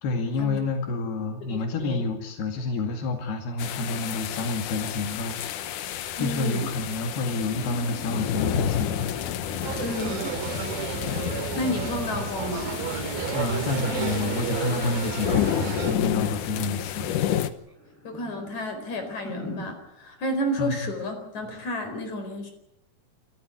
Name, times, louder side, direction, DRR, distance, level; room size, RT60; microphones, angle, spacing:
voice 1, 0.0-9.1 13.3-17.1 20.6-20.8, left 3 dB, 85° left, 4 dB, 4.2 m, -29 dB
voice 2, 1.5-2.0 6.2-6.7 9.8-10.4 11.5-12.9 16.6-16.8 18.0-22.5, left 1 dB, 50° left, 6 dB, 5.6 m, -31 dB
sound 1, 3.6-17.5, left 10 dB, 70° left, 2.3 m, -31 dB
sound 2, 6.7-11.0 11.6-13.5 13.8-17.1 17.7-19.7, equal, 5° left, 5.1 m, -43 dB
sound 3, 9.6-15.9, right 7 dB, 70° right, 3.4 m, -32 dB
27.5 x 14.0 x 9.5 m, 0.81 s
omnidirectional pair, 4.4 m